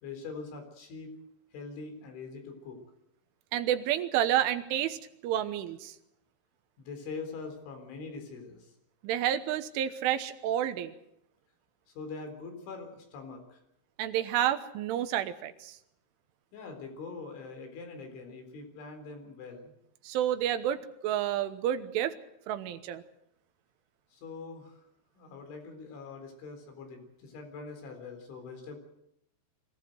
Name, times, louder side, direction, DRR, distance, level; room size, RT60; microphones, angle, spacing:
voice 1, 0.0-1.2 1.5-2.8 6.8-8.7 11.9-13.6 16.5-19.7 24.1-24.8 25.2-28.8, left 4 dB, 70° left, 5 dB, 6.3 m, -43 dB
voice 2, 3.5-5.0 5.2-6.0 9.0-10.9 14.0-15.8 20.0-22.2 22.5-23.0, right 11 dB, 85° right, 10 dB, 3.6 m, -30 dB
24.0 x 17.0 x 7.9 m, 0.77 s
omnidirectional pair, 5.6 m